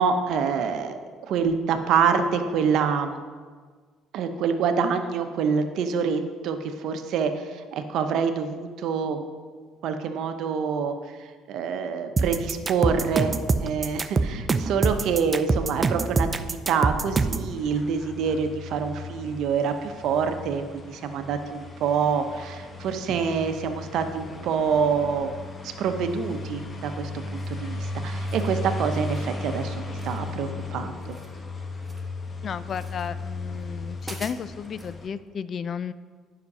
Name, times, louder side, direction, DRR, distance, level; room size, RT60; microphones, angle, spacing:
voice 1, 0.0-3.2 4.1-9.3 9.8-25.3 25.6-31.2, right 6 dB, 65° right, 7 dB, 0.8 m, -26 dB
sound 1, 12.2-17.5, right 4 dB, 35° right, 0.6 m, -24 dB
sound 2, 17.5-35.1, left 2 dB, 35° left, 1.3 m, -36 dB
sound 3, 27.3-27.7 28.1-28.5 28.9-29.3 30.0-30.6 30.9-32.1 32.7-33.1 33.6-33.7 34.0-34.9, right 2 dB, 15° right, 1.2 m, -46 dB
voice 2, 32.4-35.9, left 7 dB, 50° left, 15 dB, 0.4 m, -33 dB
9.5 x 5.9 x 5.4 m, 1.6 s
hypercardioid pair, 65°, 0 cm